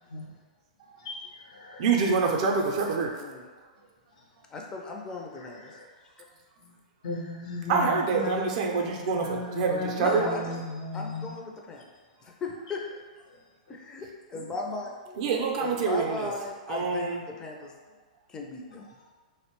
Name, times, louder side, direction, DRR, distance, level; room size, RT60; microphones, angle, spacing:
voice 1, 1.0-1.9 5.3-5.8 7.0-8.8 9.1-11.3, left 3 dB, 70° left, 0 dB, 0.6 m, -36 dB
voice 2, 1.8-3.2 7.7-10.3 15.1-16.3 16.7-17.2, right 5 dB, 50° right, 0 dB, 0.4 m, -26 dB
voice 3, 4.5-5.7 6.6-6.7 10.0-10.5 10.9-11.8 12.2-12.8 13.7-15.2 15.6-17.7 18.3-18.8, left 3 dB, 15° left, 0 dB, 0.4 m, -37 dB
2.7 x 2.0 x 2.9 m, 1.4 s
hypercardioid pair, 130°, 4 cm